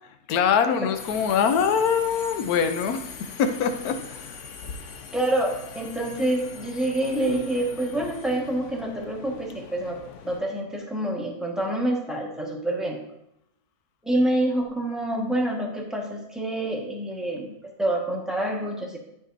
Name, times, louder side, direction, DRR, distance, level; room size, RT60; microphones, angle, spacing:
voice 1, 0.3-3.1 3.4-4.4, left 7 dB, 85° left, 8 dB, 1.2 m, -23 dB
Subway metro underground, 0.9-10.4, left 5 dB, 60° left, 1.0 m, -41 dB
voice 2, 5.1-13.0 14.0-19.0, right 1 dB, ahead, -2 dB, 1.2 m, -27 dB
12.0 x 5.1 x 2.6 m, 0.83 s
omnidirectional pair, 1.6 m